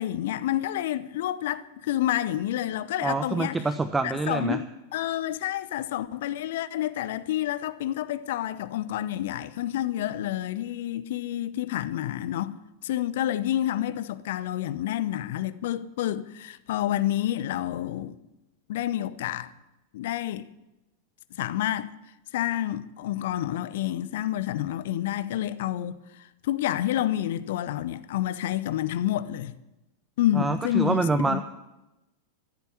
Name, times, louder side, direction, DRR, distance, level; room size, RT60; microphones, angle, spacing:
voice 1, 0.0-3.6 4.0-4.7 4.9-12.6 12.8-18.1 18.7-19.5 19.9-20.5 21.4-21.9 22.3-29.5 30.2-31.4, left 13 dB, 55° left, 0.7 m, -29 dB
voice 2, 3.0-4.6 30.3-31.4, right 3 dB, 10° right, 0.7 m, -26 dB
14.5 x 8.2 x 9.9 m
figure-of-eight pair, 90°, 0 cm